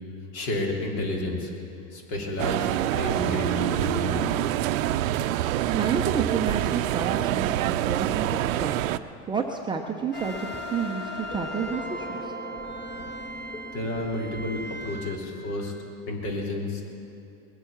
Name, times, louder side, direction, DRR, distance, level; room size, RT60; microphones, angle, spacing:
voice 1, 0.3-1.5 1.9-4.4 13.7-15.7 16.1-16.8, left 2 dB, 55° left, 0 dB, 3.4 m, -31 dB
sound 1, 2.4-9.0, right 13 dB, 70° right, 0.6 m, -26 dB
voice 2, 5.5-12.3, right 5 dB, 10° right, 1 dB, 0.6 m, -31 dB
sound 2, 10.1-15.2, equal, 25° left, 1.4 m, -36 dB
20.5 x 8.5 x 7.2 m, 2.9 s
supercardioid pair, 135°, 41 cm